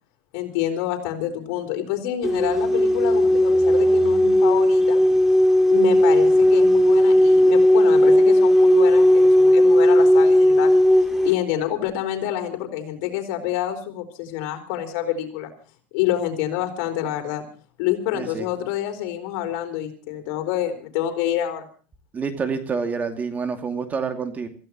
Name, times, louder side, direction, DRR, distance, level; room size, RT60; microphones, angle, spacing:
voice 1, 0.3-5.0 5.7-10.8 11.2-15.5 15.9-17.4 17.8-21.7, left 11 dB, 70° left, 5 dB, 4.4 m, -27 dB
sound 1, 2.2-11.3, left 1 dB, 5° right, 2.8 m, -16 dB
voice 2, 18.1-18.5 22.1-24.5, right 5 dB, 25° right, 6 dB, 2.6 m, -27 dB
27.5 x 16.0 x 3.0 m, 0.37 s
supercardioid pair, 120°, 7 cm